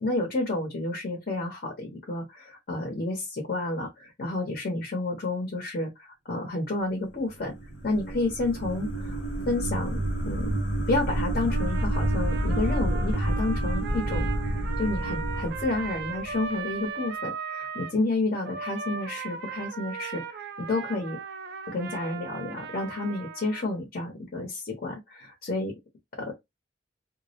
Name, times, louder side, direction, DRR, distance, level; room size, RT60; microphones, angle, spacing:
voice 1, 0.0-7.5 7.8-10.6 10.9-21.2 21.7-25.8 26.2-26.3, left 2 dB, 50° left, 0.7 m, -30 dB
sound 1, 7.3-16.6, right 1 dB, 90° left, 0.9 m, -29 dB
Trumpet, 11.5-18.0 18.4-23.8, right 5 dB, 60° right, 0.4 m, -38 dB
2.3 x 2.0 x 2.7 m
head